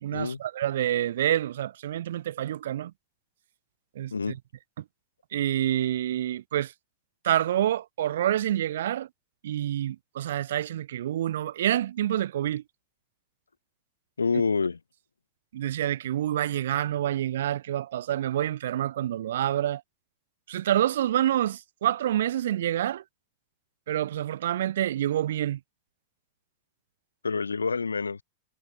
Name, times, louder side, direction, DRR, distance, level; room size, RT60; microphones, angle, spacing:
voice 1, 0.0-2.9 4.0-4.4 4.8-4.9 5.3-6.7 7.2-9.1 9.4-12.6 15.5-19.8 20.5-23.0 23.9-25.6, right 12 dB, 60° right, 0.3 m, -27 dB
voice 2, 14.2-14.8 27.2-28.2, left 4 dB, 75° left, 0.4 m, -27 dB
figure-of-eight pair, 90°, 0 cm